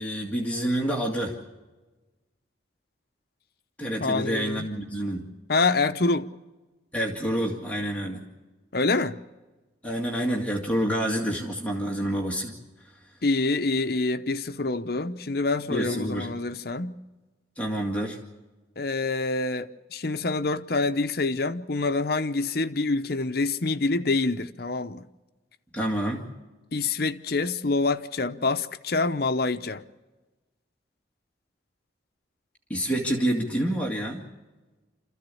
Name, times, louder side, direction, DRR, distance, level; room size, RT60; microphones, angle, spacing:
voice 1, 0.0-1.4 3.8-5.2 6.9-8.2 9.8-12.6 15.7-16.3 17.6-18.2 25.7-26.2 32.7-34.3, right 1 dB, 5° left, 2.0 m, -28 dB
voice 2, 4.0-4.7 5.5-6.3 8.7-9.2 13.2-17.0 18.8-25.1 26.7-29.8, left 3 dB, 55° left, 0.7 m, -26 dB
27.0 x 14.5 x 8.5 m
head